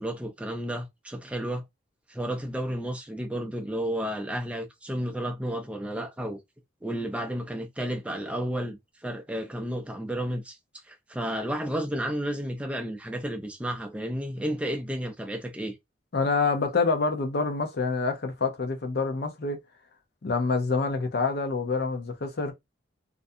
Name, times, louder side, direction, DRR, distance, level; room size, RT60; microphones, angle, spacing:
voice 1, 0.0-1.6 2.1-6.4 6.8-8.8 9.0-10.6 10.9-15.7, equal, 5° right, 0.4 m, -32 dB
voice 2, 16.1-19.6 20.2-22.5, left 4 dB, 55° left, 0.6 m, -27 dB
2.5 x 2.2 x 2.6 m
head